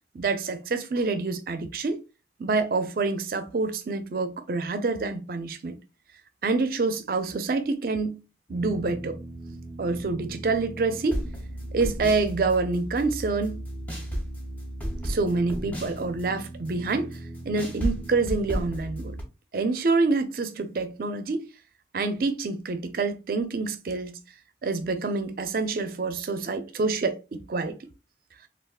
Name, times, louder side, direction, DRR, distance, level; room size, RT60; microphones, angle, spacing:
voice 1, 0.1-2.0 2.4-5.8 6.4-8.2 8.5-9.2 9.8-11.2 11.7-13.6 15.0-17.2 17.4-19.2 19.5-21.5 21.9-24.2 24.6-27.7, right 3 dB, 55° right, 0.4 m, -27 dB
sound 1, 8.5-19.2, right 1 dB, 10° left, 0.6 m, -35 dB
3.5 x 2.4 x 2.3 m
head